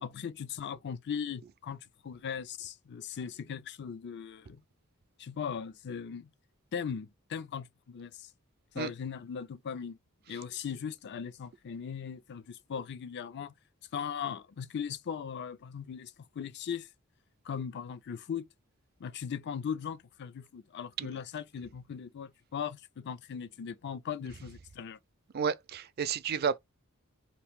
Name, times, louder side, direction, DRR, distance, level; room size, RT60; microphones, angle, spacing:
voice 1, 0.0-4.6 5.2-6.3 6.7-8.3 8.7-10.0 10.3-13.5 13.9-16.9 17.4-18.4 19.0-25.0, left 7 dB, 50° left, 0.4 m, -39 dB
voice 2, 25.3-26.6, right 7 dB, 45° right, 0.4 m, -31 dB
2.8 x 2.5 x 3.5 m
head